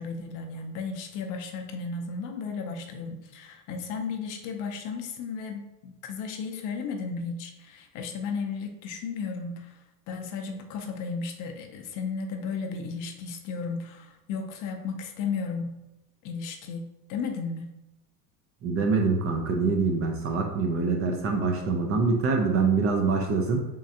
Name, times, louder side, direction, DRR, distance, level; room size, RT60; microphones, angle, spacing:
voice 1, 0.0-9.8 10.1-15.8 16.2-17.7, left 5 dB, 45° left, 4 dB, 0.5 m, -34 dB
voice 2, 18.6-23.7, right 4 dB, 30° right, 2 dB, 0.5 m, -25 dB
3.6 x 3.1 x 2.7 m, 0.94 s
supercardioid pair, 115°, 46 cm